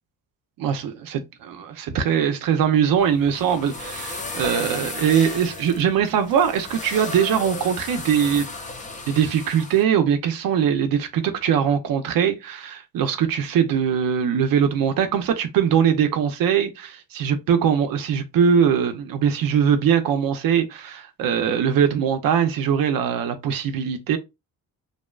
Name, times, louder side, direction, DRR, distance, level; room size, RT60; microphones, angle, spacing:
voice 1, 0.6-8.5 9.1-24.2, right 8 dB, 65° right, 0.5 m, -21 dB
sound 1, 3.0-9.8, left 3 dB, 20° left, 0.6 m, -34 dB
2.7 x 2.1 x 2.2 m
cardioid pair, 70°, 38 cm